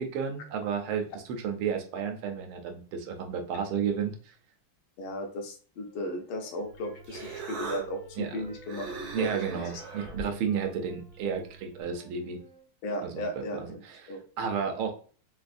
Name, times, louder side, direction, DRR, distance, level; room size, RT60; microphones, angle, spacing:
voice 1, 0.0-4.3 8.2-8.4 9.1-12.4 13.0-14.9, right 7 dB, 80° right, 4 dB, 1.5 m, -32 dB
voice 2, 5.0-8.8 9.2-9.4 12.8-13.8 14.1-14.2, left 1 dB, 75° left, 4 dB, 1.5 m, -35 dB
Wind instrument woodwind instrument, 5.8-12.7, right 4 dB, 35° right, 0.6 m, -52 dB
Human voice, 6.6-11.8, right 3 dB, 60° right, 1.4 m, -42 dB
4.0 x 2.5 x 2.4 m, 0.41 s
omnidirectional pair, 2.4 m